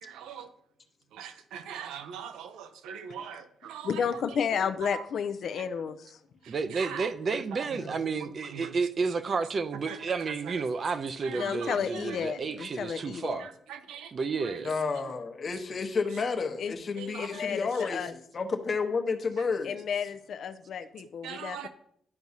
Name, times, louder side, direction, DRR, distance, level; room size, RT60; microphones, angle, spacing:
voice 1, 0.0-0.5 1.1-4.1 4.5-5.0 6.4-8.7 9.9-10.0 10.4-10.6 11.2-12.2 13.4-14.1 14.4-14.6 17.0-17.6 21.2-21.7, right 8 dB, 90° right, 10 dB, 0.6 m, -42 dB
voice 2, 3.8-6.2 11.3-13.4 16.6-16.7 17.2-18.1 19.6-21.7, left 7 dB, 60° left, 9 dB, 0.4 m, -32 dB
voice 3, 6.5-13.5 14.1-14.7, right 4 dB, 45° right, 11 dB, 0.5 m, -31 dB
voice 4, 14.6-18.0 18.3-19.8, left 4 dB, 40° left, 5 dB, 0.9 m, -31 dB
10.5 x 4.7 x 2.7 m, 0.68 s
cardioid pair, 90°, 0 cm